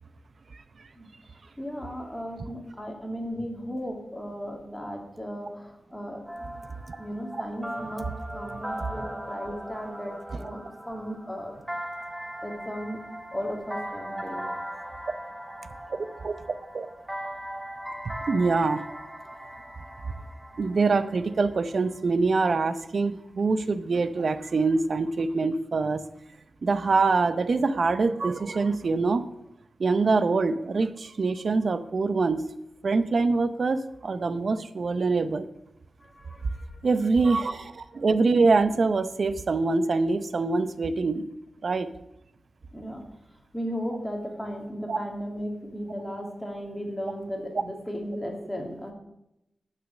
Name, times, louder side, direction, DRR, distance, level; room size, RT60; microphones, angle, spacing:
voice 1, 0.5-0.9 6.9-7.0 10.3-10.4 15.9-16.0 16.2-16.3 16.7-16.9 18.3-18.9 20.6-26.0 26.6-29.2 29.8-32.4 32.8-35.5 36.8-41.2 41.6-41.9 44.9-45.0, right 3 dB, 60° right, 12 dB, 0.6 m, -24 dB
voice 2, 1.6-8.1 8.3-11.5 12.4-13.0 13.3-14.5 36.0-36.8 42.7-43.0 43.5-48.9, equal, 10° left, 1 dB, 2.4 m, -36 dB
sound 1, 6.3-22.0, right 1 dB, 10° right, 1.6 m, -39 dB
8.6 x 6.3 x 7.1 m, 0.85 s
cardioid pair, 65°, 0 cm